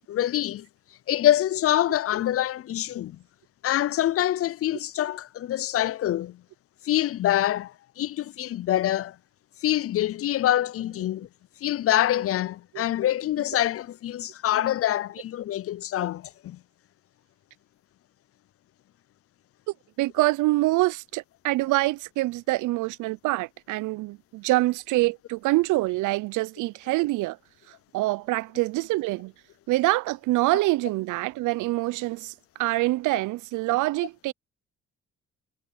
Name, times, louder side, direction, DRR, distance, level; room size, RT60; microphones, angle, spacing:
voice 1, 0.1-0.7 1.1-3.2 3.6-6.4 6.8-9.2 9.6-11.3 11.6-16.6, left 12 dB, 50° left, 0.4 m, -25 dB
voice 2, 20.0-27.4 27.9-29.3 29.7-34.3, right 20 dB, 85° right, 0.4 m, -25 dB
cardioid pair, 90°, 30 cm